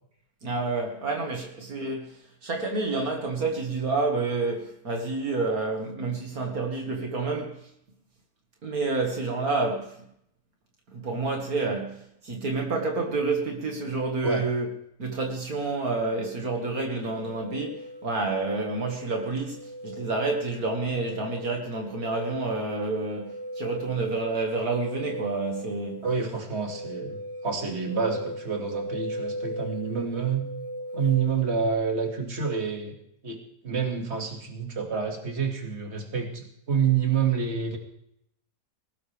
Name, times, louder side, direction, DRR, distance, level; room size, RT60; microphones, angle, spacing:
voice 1, 0.4-7.7 8.6-10.0 10.9-14.7 15.0-26.0, right 3 dB, 75° right, 2.4 m, -29 dB
sound 1, 17.1-31.3, equal, 30° right, 0.4 m, -38 dB
voice 2, 26.0-30.4 30.9-33.0 33.2-37.8, right 6 dB, 45° right, 2.6 m, -28 dB
20.5 x 18.5 x 3.5 m
omnidirectional pair, 1.6 m